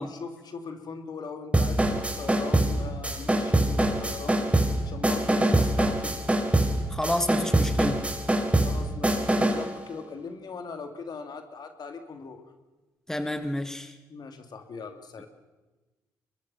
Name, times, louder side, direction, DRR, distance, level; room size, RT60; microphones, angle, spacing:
voice 1, 0.0-4.4 4.8-6.2 8.5-12.4 14.1-15.3, left 5 dB, 60° left, 6 dB, 3.0 m, -40 dB
sound 1, 1.5-9.7, right 1 dB, 15° right, 4.2 m, -24 dB
voice 2, 6.9-8.1 13.1-13.9, left 1 dB, 5° left, 8 dB, 1.8 m, -29 dB
23.5 x 21.5 x 5.9 m, 1.1 s
supercardioid pair, 60°, 8 cm